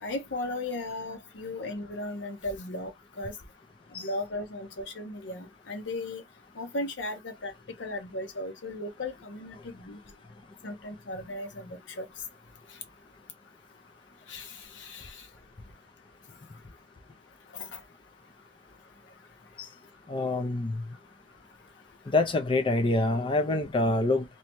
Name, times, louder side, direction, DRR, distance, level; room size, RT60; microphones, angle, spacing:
voice 1, 0.0-2.9 3.2-3.3 4.0-6.2 6.6-7.5 7.8-10.0 10.6-12.1 14.3-15.2 17.5-17.8, left 2 dB, 80° left, 0.8 m, -36 dB
voice 2, 20.1-20.8 22.1-24.3, left 2 dB, 25° left, 0.4 m, -26 dB
2.7 x 2.2 x 2.9 m
head